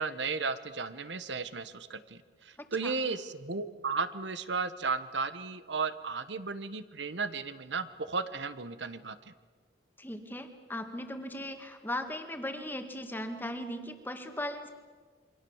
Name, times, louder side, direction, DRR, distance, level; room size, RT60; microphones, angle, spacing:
voice 1, 0.0-9.3, right 4 dB, 80° right, 13 dB, 1.2 m, -34 dB
voice 2, 2.6-2.9 10.0-14.7, left 1 dB, 10° left, 6 dB, 1.9 m, -38 dB
28.0 x 24.0 x 7.2 m, 1.5 s
head